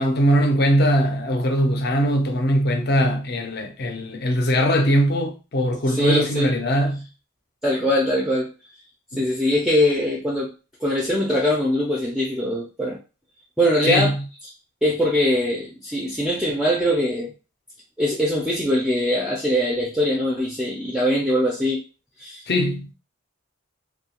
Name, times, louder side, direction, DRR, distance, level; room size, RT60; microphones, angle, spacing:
voice 1, 0.0-7.1 9.1-9.2 13.8-14.2 22.5-22.9, equal, 50° left, 0.5 m, -21 dB
voice 2, 5.9-6.5 7.6-8.5 9.2-10.5 10.8-13.0 13.6-14.1 14.8-17.3 18.0-21.8 22.2-22.4, equal, ahead, 0.4 m, -22 dB
2.7 x 2.3 x 2.8 m
head